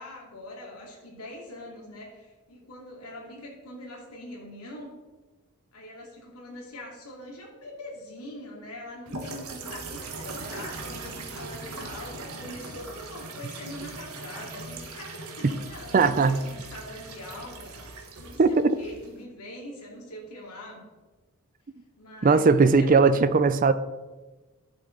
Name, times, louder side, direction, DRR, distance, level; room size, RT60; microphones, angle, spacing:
voice 1, 0.0-5.0 5.7-20.9 22.0-23.0, left 1 dB, 85° left, -2 dB, 2.7 m, -43 dB
sound 1, 9.1-19.2, right 3 dB, 70° right, 1.4 m, -40 dB
voice 2, 15.9-16.4 18.4-18.7 22.2-23.7, right 4 dB, 40° right, 12 dB, 0.5 m, -19 dB
11.0 x 7.7 x 3.9 m, 1.2 s
head